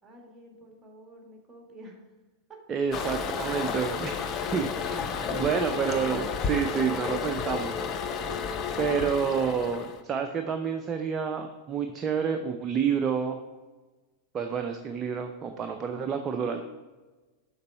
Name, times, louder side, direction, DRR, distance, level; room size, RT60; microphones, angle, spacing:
voice 1, 0.0-2.1 2.5-2.6 5.1-6.4 16.1-16.6, right 1 dB, 10° right, 0 dB, 1.7 m, -48 dB
voice 2, 2.7-4.2 4.5-7.7 8.8-13.4 14.3-16.6, right 6 dB, 25° right, 6 dB, 0.4 m, -29 dB
Toilet flush, 2.9-10.0, left 6 dB, 30° left, 0.6 m, -32 dB
6.7 x 5.3 x 4.4 m, 1.2 s
figure-of-eight pair, 90°, 0 cm